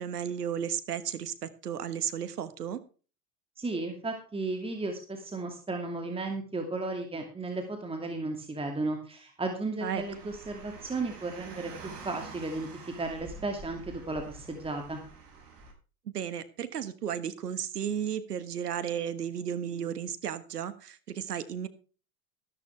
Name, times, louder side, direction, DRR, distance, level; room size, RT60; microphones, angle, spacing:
voice 1, 0.0-2.8 9.8-10.3 16.1-21.7, right 8 dB, 85° right, 13 dB, 1.6 m, -34 dB
voice 2, 3.6-11.7 12.0-15.0, right 2 dB, 10° right, 4 dB, 2.4 m, -34 dB
Car, 9.9-15.7, right 4 dB, 45° right, 6.9 m, -47 dB
14.0 x 12.5 x 3.4 m, 0.36 s
hypercardioid pair, 90°, 46 cm